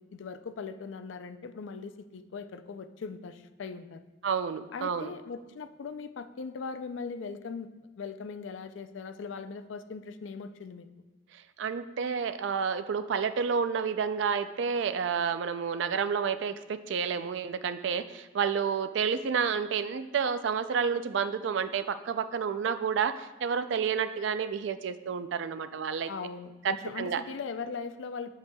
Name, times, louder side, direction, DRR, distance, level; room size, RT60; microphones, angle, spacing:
voice 1, 0.0-4.0 4.7-10.9 26.1-28.3, left 5 dB, 70° left, 10 dB, 0.4 m, -40 dB
voice 2, 4.2-5.1 11.3-26.1 26.6-27.2, right 6 dB, 65° right, 12 dB, 0.4 m, -30 dB
8.1 x 6.8 x 2.3 m, 1.2 s
head